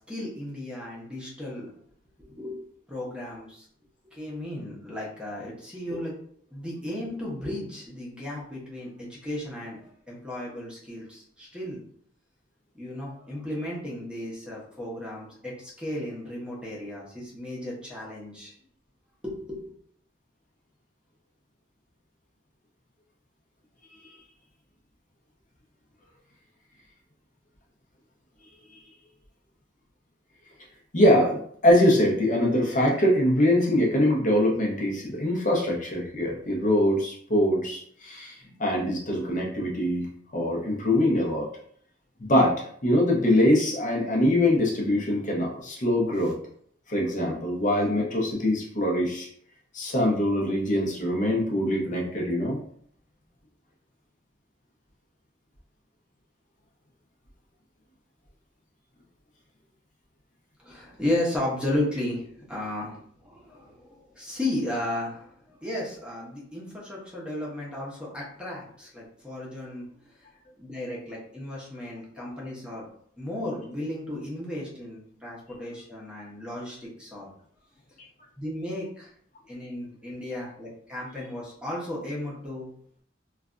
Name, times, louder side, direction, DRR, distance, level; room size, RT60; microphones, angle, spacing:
voice 1, 0.1-1.7 2.2-2.6 2.9-3.6 4.0-6.1 6.5-11.8 12.7-18.5 19.2-19.7 60.6-69.9 70.6-72.9 73.2-77.3 78.4-79.1 79.5-82.7, left 1 dB, 5° right, -5 dB, 0.8 m, -34 dB
voice 2, 30.9-40.1 40.3-41.5 42.2-46.4 46.9-49.3 49.7-52.6, left 1 dB, 45° left, -1 dB, 0.8 m, -23 dB
3.2 x 2.3 x 2.4 m, 0.62 s
head